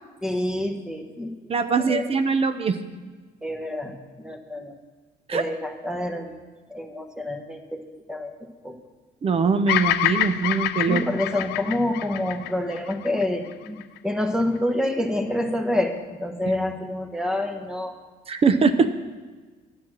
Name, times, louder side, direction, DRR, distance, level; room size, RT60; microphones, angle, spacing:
voice 1, 0.2-2.1 3.4-4.8 5.3-6.3 6.7-7.8 8.1-8.8 10.9-18.0, left 1 dB, 5° right, 5 dB, 1.2 m, -28 dB
voice 2, 1.5-2.8 5.3-5.4 9.2-11.0 18.3-18.9, right 5 dB, 35° right, 10 dB, 0.7 m, -22 dB
Bird vocalization bird call bird song, 9.7-14.0, left 13 dB, 80° left, 0.5 m, -26 dB
10.5 x 7.6 x 6.2 m, 1.4 s
cardioid pair, 110°, 17 cm